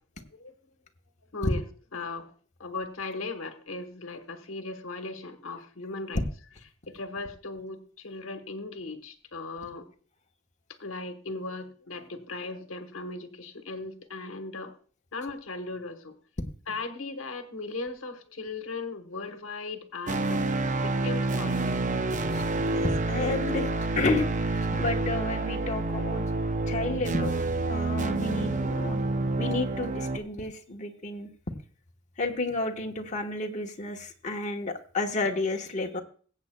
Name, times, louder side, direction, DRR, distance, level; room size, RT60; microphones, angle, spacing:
voice 1, 1.9-2.3 2.6-6.2 6.9-9.8 10.8-14.7 15.1-16.1 16.7-20.5 20.8-21.8, left 3 dB, 80° left, 7 dB, 1.2 m, -37 dB
sound 1, 20.1-30.2, right 2 dB, 40° right, 0.6 m, -28 dB
voice 2, 22.7-23.7 24.0-26.2 26.7-27.4 27.7-29.0 29.4-31.3 32.2-36.0, left 3 dB, 35° left, 1 dB, 1.2 m, -31 dB
21.0 x 8.4 x 2.3 m, 0.43 s
head